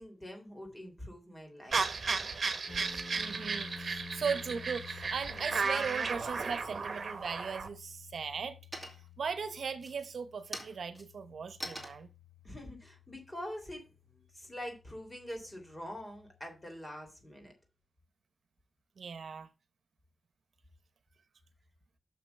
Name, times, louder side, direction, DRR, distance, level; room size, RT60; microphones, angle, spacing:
voice 1, 0.0-2.2 4.2-4.5 12.4-17.5, left 1 dB, 15° left, 3.4 m, -45 dB
sound 1, 1.7-7.7, right 4 dB, 60° right, 1.2 m, -34 dB
sound 2, 2.7-16.7, left 5 dB, 55° left, 2.2 m, -52 dB
voice 2, 3.2-8.6 9.2-12.1 19.0-19.5, right 6 dB, 80° right, 0.9 m, -38 dB
sound 3, 8.1-8.5 8.7-9.3 9.7-14.1, right 1 dB, 5° right, 2.5 m, -46 dB
6.9 x 5.9 x 5.8 m
wide cardioid pair, 115°, 0 cm